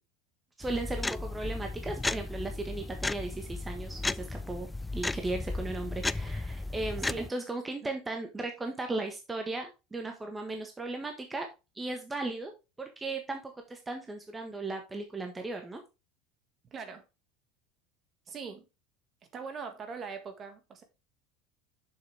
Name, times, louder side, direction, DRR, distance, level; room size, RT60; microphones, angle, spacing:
sound 1, 0.6-7.3, left 2 dB, 10° left, 0.3 m, -35 dB
voice 1, 0.6-11.5 11.7-12.5 12.8-13.4 13.7-15.8, right 2 dB, 15° right, 1.4 m, -36 dB
voice 2, 16.7-17.0 18.3-18.7 19.3-20.8, right 5 dB, 35° right, 1.9 m, -41 dB
6.8 x 6.5 x 3.4 m
hypercardioid pair, 85°, 0 cm